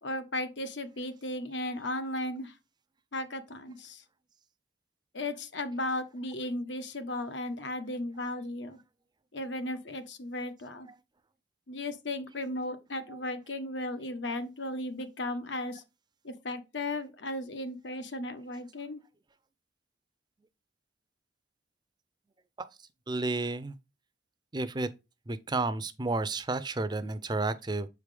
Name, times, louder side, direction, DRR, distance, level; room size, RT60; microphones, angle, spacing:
voice 1, 0.0-2.5 3.1-4.0 5.1-8.8 9.3-10.9 11.7-15.8 16.2-19.0, left 1 dB, 80° left, 1.2 m, -35 dB
voice 2, 23.1-23.8 24.5-24.9 25.3-27.9, right 3 dB, 25° right, 0.5 m, -31 dB
7.4 x 4.8 x 3.4 m
head